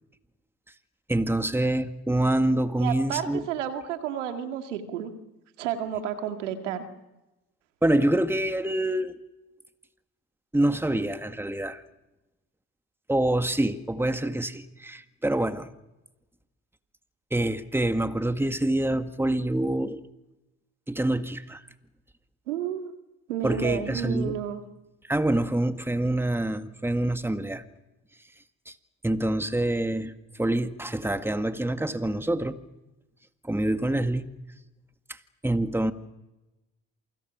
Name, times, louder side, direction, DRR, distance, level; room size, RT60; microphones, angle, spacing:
voice 1, 1.1-3.5 7.8-9.2 10.5-11.8 13.1-15.7 17.3-20.0 20.9-21.6 23.4-24.4 25.0-27.6 28.7-28.8 29.0-32.6 33.4-34.3 35.1-35.2 35.4-35.9, right 1 dB, 5° right, 1.9 m, -26 dB
voice 2, 2.8-5.1 5.6-6.8 22.5-22.9 23.3-24.6, right 9 dB, 90° right, 2.1 m, -31 dB
28.0 x 24.5 x 6.3 m
hypercardioid pair, 55°, 35 cm